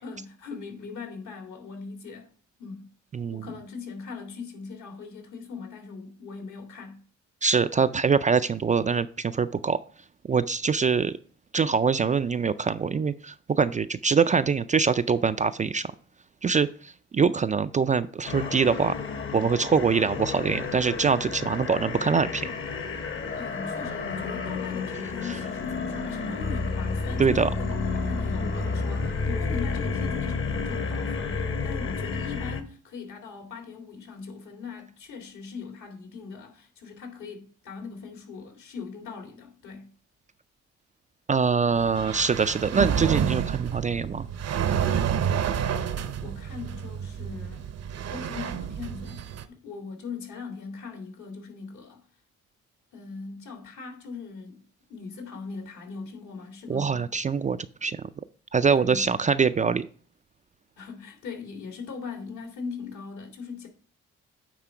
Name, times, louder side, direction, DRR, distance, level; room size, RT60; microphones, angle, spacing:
voice 1, 0.0-2.3 2.6-2.9 3.3-7.0 23.4-39.9 45.6-47.7 48.1-52.0 52.9-54.6 54.9-57.4 58.8-59.2 60.8-63.7, left 5 dB, 70° left, 2.4 m, -40 dB
voice 2, 3.1-3.5 7.4-9.8 10.3-11.2 11.5-15.9 16.4-18.9 19.3-22.5 25.3-25.4 27.2-27.5 41.3-44.3 56.7-58.0 58.5-59.9, right 5 dB, 25° right, 0.3 m, -24 dB
sound 1, 18.3-32.6, left 4 dB, 40° left, 1.1 m, -31 dB
sound 2, 41.7-49.4, right 8 dB, 55° right, 0.7 m, -29 dB
9.2 x 3.7 x 4.9 m
cardioid pair, 90°, 30 cm